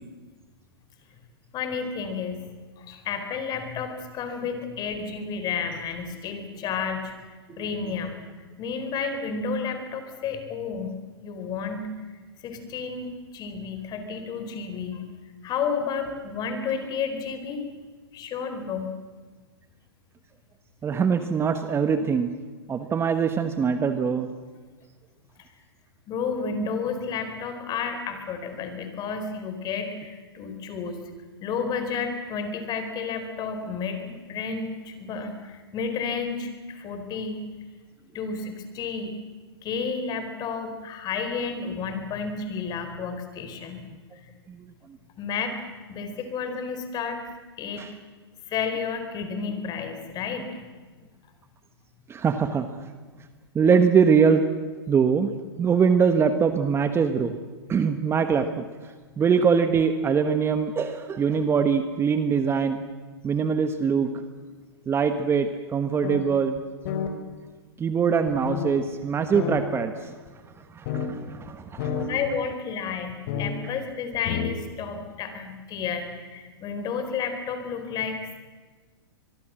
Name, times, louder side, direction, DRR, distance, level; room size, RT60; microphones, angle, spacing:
voice 1, 1.5-2.5 2.8-8.2 8.6-15.0 15.4-17.6 18.1-18.9 26.1-31.0 31.4-37.4 38.1-39.2 39.6-43.8 44.1-44.2 45.2-45.5 45.9-47.2 47.6-47.9 48.5-50.6 72.1-78.4, left 5 dB, 30° left, 7 dB, 4.4 m, -31 dB
voice 2, 20.8-22.3 22.7-24.3 44.5-44.6 47.8-47.9 52.1-52.7 53.5-54.4 54.9-55.3 55.6-57.4 57.7-58.6 59.2-62.8 63.2-64.1 64.9-66.6 67.8-70.1 70.7-72.1, right 6 dB, 20° right, 9 dB, 1.3 m, -23 dB
sound 1, 66.0-66.2 66.6-66.7 66.8-67.1 68.4-68.7 69.3-69.6 70.3-70.4 70.9-71.1 71.5-71.6 71.8-72.1 73.3-73.5 74.1-74.6, left 8 dB, 50° left, 4.1 m, -29 dB
24.0 x 22.0 x 7.7 m, 1.4 s
hypercardioid pair, 115°, 14 cm